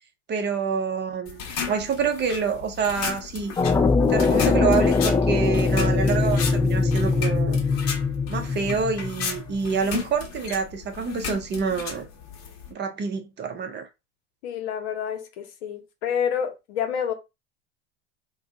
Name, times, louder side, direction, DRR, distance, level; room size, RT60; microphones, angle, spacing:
voice 1, 0.3-3.5 4.1-7.6 8.3-12.0 12.7-13.9, right 5 dB, 30° right, 0.7 m, -27 dB
sound 1, 1.3-12.7, left 6 dB, 45° left, 0.9 m, -35 dB
sound 2, 3.6-9.4, left 4 dB, 10° left, 0.4 m, -22 dB
voice 2, 14.4-17.1, left 8 dB, 70° left, 1.0 m, -28 dB
2.5 x 2.3 x 3.7 m
hypercardioid pair, 100°, 35 cm